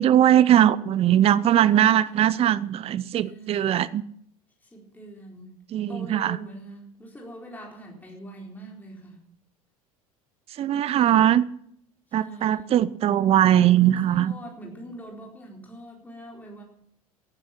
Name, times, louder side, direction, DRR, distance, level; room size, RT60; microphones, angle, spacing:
voice 1, 0.0-4.0 5.7-6.4 10.6-11.4 12.1-14.3, right 11 dB, 30° right, 20 dB, 0.6 m, -20 dB
voice 2, 1.1-2.5 3.0-3.9 4.6-5.6 5.9-9.2 12.1-12.7 13.6-16.6, right 1 dB, 10° left, -2 dB, 4.3 m, -43 dB
17.5 x 10.5 x 6.0 m, 0.68 s
figure-of-eight pair, 75°, 19 cm